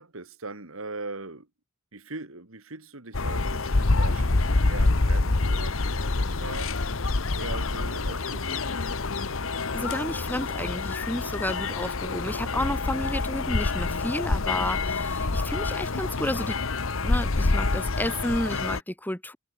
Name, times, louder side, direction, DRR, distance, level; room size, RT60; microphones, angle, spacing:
voice 1, 0.0-1.5 1.9-6.7 7.3-8.8 11.2-11.4 12.6-12.8, right 3 dB, 80° right, 2.7 m, -40 dB
sound 1, 3.1-18.8, left 3 dB, 75° left, 1.2 m, -27 dB
voice 2, 9.7-16.6 17.0-19.4, left 1 dB, 10° left, 1.4 m, -31 dB
head